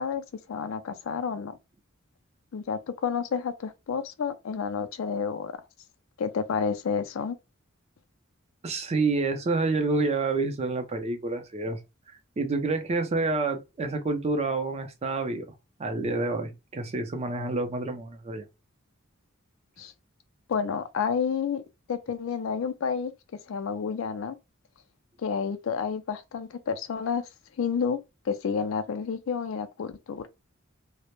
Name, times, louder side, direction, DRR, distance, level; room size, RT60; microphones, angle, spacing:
voice 1, 0.0-1.6 2.5-5.6 6.2-7.4 19.8-19.9 20.5-21.6 21.9-23.1 23.5-24.4 25.2-27.2 27.6-28.0 28.3-30.3, left 6 dB, 70° left, 0.4 m, -30 dB
voice 2, 8.6-11.8 12.4-15.5 15.8-18.5, right 3 dB, 30° right, 0.4 m, -28 dB
2.1 x 2.0 x 2.9 m
head